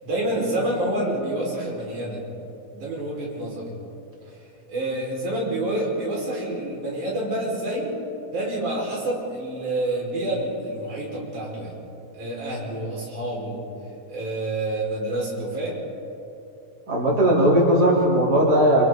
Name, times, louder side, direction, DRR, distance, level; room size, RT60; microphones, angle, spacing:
voice 1, 0.0-2.2 2.7-3.7 4.7-7.9 8.3-11.8 12.1-13.6 14.1-15.8, right 1 dB, 85° right, -4 dB, 6.5 m, -28 dB
voice 2, 16.9-18.9, right 1 dB, 30° right, -4 dB, 4.0 m, -18 dB
28.0 x 25.5 x 4.0 m, 2.9 s
omnidirectional pair, 3.5 m